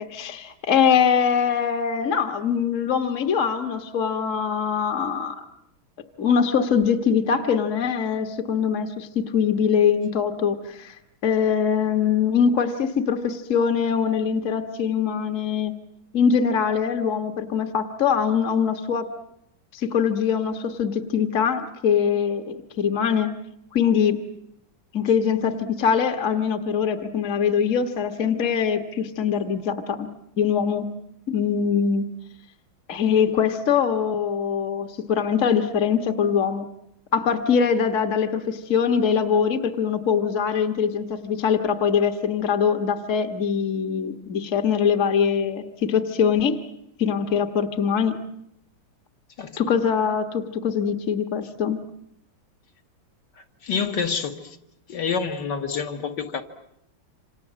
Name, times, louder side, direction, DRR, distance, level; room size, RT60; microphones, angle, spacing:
voice 1, 0.0-5.3 6.2-10.9 11.2-15.7 16.1-19.1 19.7-23.3 23.7-24.2 24.9-30.1 30.4-30.9 31.3-32.0 32.9-36.7 37.1-46.6 47.0-48.2 49.6-51.8, left 7 dB, 40° left, 1.7 m, -23 dB
voice 2, 53.6-54.5 54.9-56.4, left 6 dB, 55° left, 2.2 m, -27 dB
27.5 x 27.0 x 7.5 m
omnidirectional pair, 2.3 m